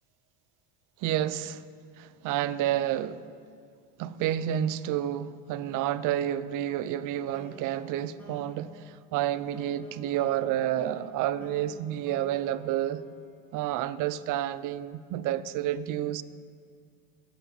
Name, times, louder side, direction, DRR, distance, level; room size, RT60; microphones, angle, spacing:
voice 1, 1.0-1.6 2.0-3.2 4.0-13.0 13.5-16.2, right 12 dB, 55° right, 0.7 m, -30 dB
sound 1, 7.3-13.7, equal, 5° left, 2.8 m, -50 dB
23.0 x 8.3 x 4.1 m
supercardioid pair, 120°, 39 cm